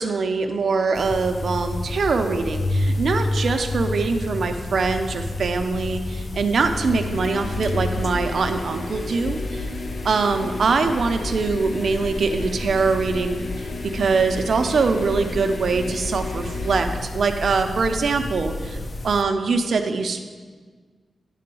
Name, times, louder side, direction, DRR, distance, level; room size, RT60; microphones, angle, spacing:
voice 1, 0.0-9.7 10.0-13.4 13.9-18.8 19.0-20.2, right 4 dB, 65° right, 6 dB, 0.7 m, -23 dB
sound 1, 0.9-19.2, left 2 dB, 35° left, 0.4 m, -30 dB
sound 2, 6.7-17.0, left 3 dB, 75° left, 1.1 m, -35 dB
10.0 x 3.8 x 6.9 m, 1.5 s
wide cardioid pair, 110°, 0 cm